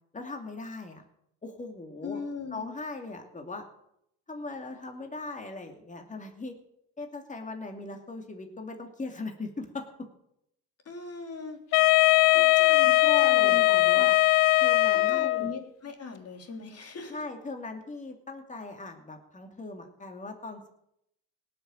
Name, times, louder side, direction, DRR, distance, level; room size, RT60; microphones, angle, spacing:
voice 1, 0.1-1.0 1.4-2.2 2.5-3.6 4.3-6.6 7.0-9.9 12.3-12.5 13.0-14.2 14.6-15.5 17.1-20.7, left 3 dB, 20° left, 3 dB, 2.6 m, -39 dB
voice 2, 2.0-2.7 10.9-12.0 12.2-14.1 14.9-17.2, left 4 dB, 40° left, 4 dB, 3.5 m, -40 dB
Wind instrument woodwind instrument, 11.7-15.6, left 19 dB, 90° left, 0.7 m, -20 dB
18.0 x 7.1 x 8.9 m, 0.77 s
supercardioid pair, 75°, 36 cm